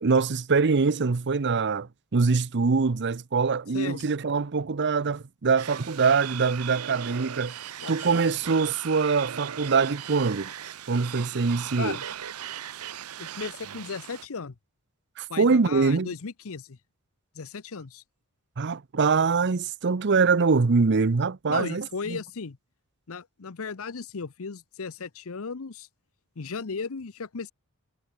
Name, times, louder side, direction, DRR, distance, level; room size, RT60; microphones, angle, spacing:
voice 1, 0.0-7.6 7.9-10.5 10.9-12.0 15.2-16.1 18.6-22.2, right 4 dB, 50° right, 0.7 m, -24 dB
voice 2, 3.7-4.1 7.8-8.0 8.3-8.4 11.8-12.0 13.2-14.5 15.3-16.8 17.3-18.0 21.5-22.6 23.1-25.9 26.4-27.5, left 5 dB, 65° left, 0.8 m, -36 dB
sound 1, 5.6-14.3, right 10 dB, 85° right, 0.8 m, -38 dB
head